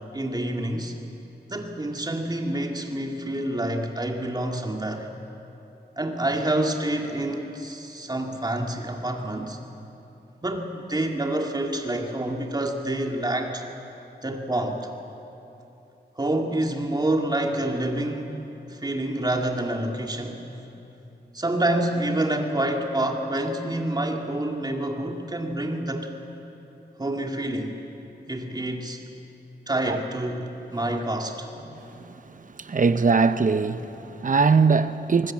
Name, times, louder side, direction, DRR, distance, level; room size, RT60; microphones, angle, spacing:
voice 1, 0.1-0.9 1.5-5.1 6.0-9.6 10.4-13.6 14.2-14.9 16.2-18.4 18.8-20.4 21.3-26.1 27.0-27.7 28.3-29.0 29.7-31.5, right 1 dB, 25° right, 2.4 m, -27 dB
voice 2, 32.6-35.3, right 4 dB, 50° right, 0.8 m, -21 dB
25.0 x 20.0 x 7.5 m
wide cardioid pair, 110°, 18 cm